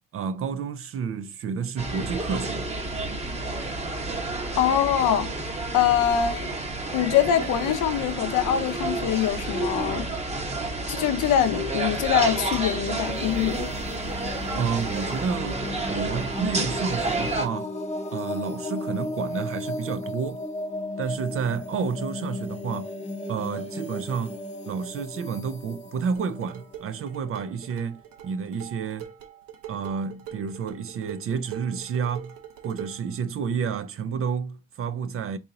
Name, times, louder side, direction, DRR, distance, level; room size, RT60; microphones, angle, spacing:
voice 1, 0.1-2.7 14.6-15.6 15.9-17.7 18.1-20.4 21.0-22.9 23.3-24.4 24.7-29.1 29.7-32.3 32.6-35.4, right 6 dB, 40° right, 0.4 m, -30 dB
sound 1, 1.8-17.5, right 2 dB, 20° right, 0.9 m, -30 dB
voice 2, 4.6-5.3 5.7-6.5 6.9-10.1 10.9-13.7, left 10 dB, 65° left, 0.6 m, -23 dB
sound 2, 13.0-27.7, left 2 dB, 20° left, 0.8 m, -35 dB
sound 3, 26.1-33.1, right 10 dB, 75° right, 1.0 m, -43 dB
3.9 x 2.8 x 3.8 m
cardioid pair, 105°, 33 cm